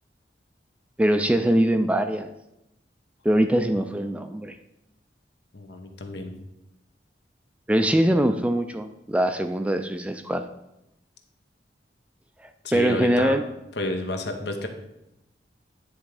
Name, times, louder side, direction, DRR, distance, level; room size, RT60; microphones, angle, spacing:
voice 1, 1.0-2.3 3.2-4.5 7.7-10.4 12.7-13.4, right 1 dB, 5° right, 8 dB, 0.3 m, -22 dB
voice 2, 5.5-6.3 12.6-13.4 13.8-14.7, left 2 dB, 70° left, 6 dB, 0.9 m, -30 dB
9.6 x 3.5 x 4.8 m, 0.86 s
head